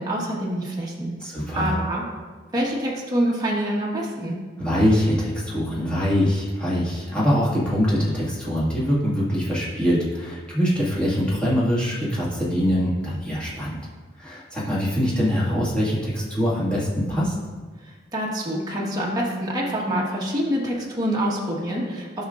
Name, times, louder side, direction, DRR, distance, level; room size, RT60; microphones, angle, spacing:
voice 1, 0.0-1.1 1.5-2.0 2.5-4.4 17.8-22.2, equal, 20° right, -4 dB, 1.4 m, -26 dB
voice 2, 1.2-1.7 4.6-13.8 14.2-17.3, equal, 5° left, -8 dB, 1.9 m, -23 dB
12.5 x 5.4 x 2.5 m, 1.4 s
head